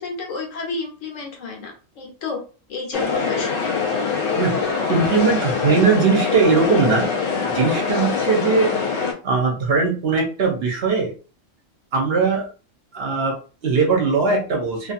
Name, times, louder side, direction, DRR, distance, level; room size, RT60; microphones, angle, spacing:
voice 1, 0.0-2.4 2.7-3.7, left 3 dB, 75° left, 1 dB, 1.2 m, -31 dB
sound 1, 2.9-9.1, left 5 dB, 60° left, 0.6 m, -23 dB
voice 2, 4.9-7.1 7.4-8.7 9.2-11.1 11.9-12.5 12.9-14.9, right 4 dB, 55° right, 1 dB, 0.8 m, -20 dB
2.7 x 2.5 x 2.4 m, 0.35 s
omnidirectional pair, 1.3 m